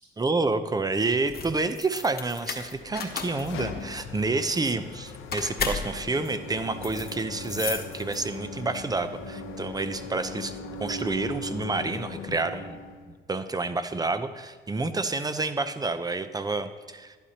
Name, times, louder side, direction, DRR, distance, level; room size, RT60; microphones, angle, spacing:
voice 1, 0.2-12.8 13.3-17.2, right 3 dB, 20° right, 11 dB, 0.7 m, -29 dB
sound 1, 1.2-8.5, left 5 dB, 50° left, 1.2 m, -36 dB
sound 2, 2.8-13.1, left 3 dB, 85° left, 0.9 m, -39 dB
11.5 x 11.0 x 2.9 m, 1.5 s
cardioid pair, 90°, 20 cm